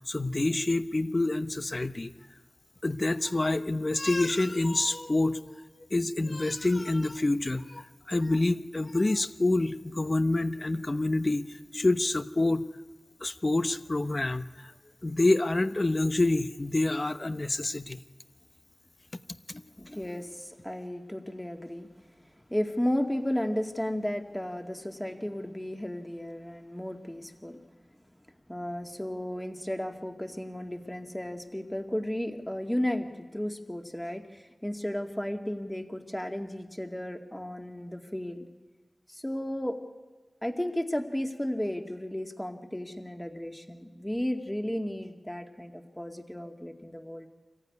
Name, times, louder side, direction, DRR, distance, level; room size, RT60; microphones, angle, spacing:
voice 1, 0.1-2.1 2.8-5.5 5.9-7.8 8.1-11.5 11.7-12.6 13.2-14.4 15.0-18.0, left 2 dB, 45° left, 10 dB, 0.9 m, -27 dB
voice 2, 19.8-21.9 22.5-27.6 28.5-38.4 39.1-39.8 40.4-47.3, left 1 dB, 10° left, 4 dB, 2.1 m, -34 dB
24.0 x 15.0 x 9.5 m, 1.3 s
wide cardioid pair, 45°, 0 cm